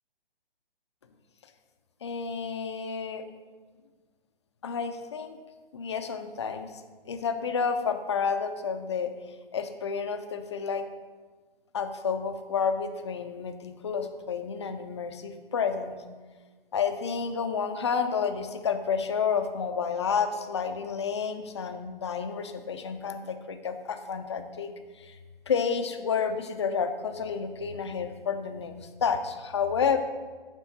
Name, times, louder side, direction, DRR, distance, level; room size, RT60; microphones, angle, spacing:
voice 1, 2.0-3.2 4.6-5.4 5.7-6.7 7.1-9.1 9.5-10.9 11.7-16.0 16.7-25.2 25.5-30.0, left 6 dB, 30° left, 8 dB, 0.4 m, -30 dB
9.5 x 3.7 x 4.1 m, 1.4 s
figure-of-eight pair, 135°, 29 cm